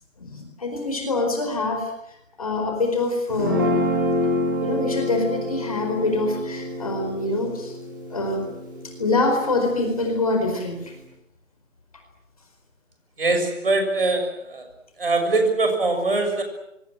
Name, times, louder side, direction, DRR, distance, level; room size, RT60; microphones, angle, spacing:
voice 1, 0.2-1.9 2.4-3.7 4.6-7.7 8.1-8.5 9.0-10.8, left 2 dB, 30° left, 5 dB, 4.6 m, -25 dB
Guitar, 3.3-9.6, left 1 dB, 15° right, 4.9 m, -27 dB
voice 2, 13.2-14.6 15.0-16.4, right 3 dB, 45° right, 6 dB, 6.5 m, -22 dB
26.5 x 23.0 x 7.7 m, 0.82 s
figure-of-eight pair, 175°, 39 cm